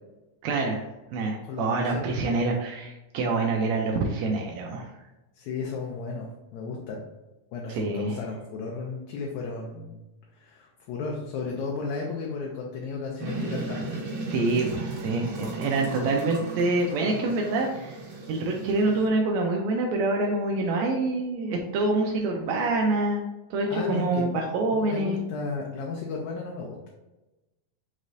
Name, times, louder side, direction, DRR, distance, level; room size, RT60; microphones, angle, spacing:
voice 1, 0.4-0.8 1.1-4.9 7.7-8.2 14.3-18.0 18.3-25.2, right 2 dB, 85° right, 0 dB, 1.5 m, -26 dB
voice 2, 1.5-2.1 5.4-7.0 7.5-10.0 10.4-13.9 23.7-24.3 24.7-26.9, left 4 dB, 75° left, -1 dB, 1.9 m, -34 dB
sound 1, 13.2-19.1, right 2 dB, 60° right, 1.7 m, -36 dB
5.4 x 3.1 x 2.5 m, 1.0 s
omnidirectional pair, 3.6 m